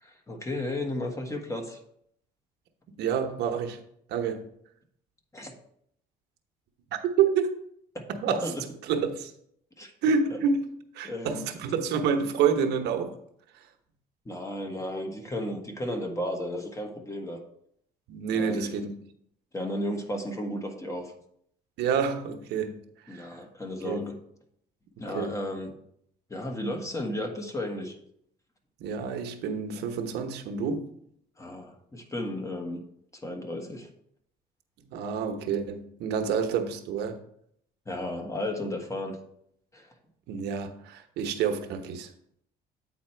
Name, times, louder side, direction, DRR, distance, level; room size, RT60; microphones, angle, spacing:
voice 1, 0.0-1.8 5.3-5.5 8.4-8.6 9.8-9.9 10.3-10.4 11.0-11.5 14.2-17.4 18.3-18.7 19.5-21.1 23.1-24.1 25.0-25.7 26.3-27.9 31.4-32.8 33.2-33.9 37.9-39.2 39.7-39.9, left 1 dB, 20° left, 1.3 m, -34 dB
voice 2, 3.0-3.8 4.1-4.4 6.9-7.6 8.2-8.5 8.8-9.3 10.0-10.6 10.9-13.2 13.5-13.6 18.1-18.9 21.8-23.3 23.8-24.1 25.1-25.4 28.8-30.9 34.9-37.2 40.3-42.1, right 6 dB, 80° right, 1.0 m, -28 dB
8.4 x 4.4 x 4.4 m
cardioid pair, 110°, 17 cm